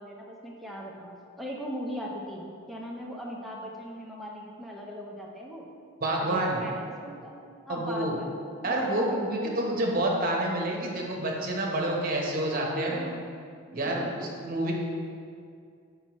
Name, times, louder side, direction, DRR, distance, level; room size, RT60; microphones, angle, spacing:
voice 1, 0.0-5.7 6.2-7.3 7.7-8.3 8.6-9.5 10.4-10.5 12.4-13.2 13.7-14.3, equal, ahead, -3 dB, 0.7 m, -40 dB
voice 2, 6.0-6.6 7.7-8.1 8.6-13.1 13.7-14.7, right 1 dB, 40° right, -2 dB, 1.0 m, -28 dB
7.3 x 5.4 x 3.1 m, 2.3 s
head